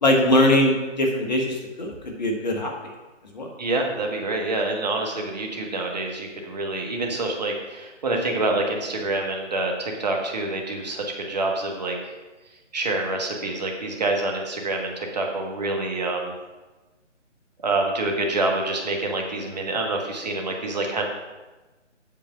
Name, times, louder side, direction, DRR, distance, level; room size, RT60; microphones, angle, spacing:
voice 1, 0.0-2.9 3.3-3.5, left 1 dB, 35° left, 1 dB, 1.3 m, -21 dB
voice 2, 3.6-12.1 12.7-16.3 17.6-21.1, right 2 dB, 35° right, 1 dB, 1.2 m, -27 dB
7.5 x 5.2 x 5.5 m, 1.2 s
figure-of-eight pair, 150°, 37 cm